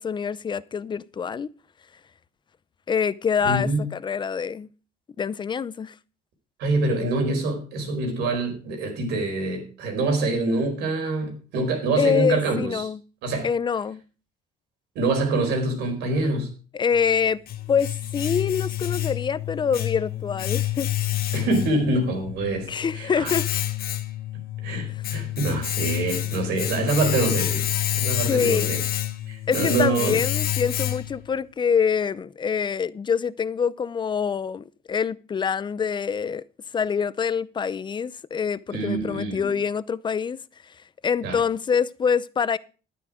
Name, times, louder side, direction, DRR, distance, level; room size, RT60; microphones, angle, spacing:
voice 1, 0.0-1.5 2.9-4.7 5.2-5.9 12.0-13.0 13.4-14.0 16.7-17.4 17.7-21.2 22.7-23.5 28.2-28.7 29.5-36.4 36.7-40.7 41.0-42.6, left 6 dB, 25° left, 0.6 m, -25 dB
voice 2, 3.4-3.9 6.6-12.9 13.2-13.5 14.9-16.5 21.3-23.3 24.6-27.7 27.9-28.8 29.3-30.2 38.7-39.5 41.2-41.4, right 2 dB, 85° right, 4.4 m, -25 dB
Domestic sounds home sounds, 16.9-31.3, left 13 dB, 65° left, 1.2 m, -28 dB
11.5 x 9.7 x 4.9 m
cardioid pair, 110°, 17 cm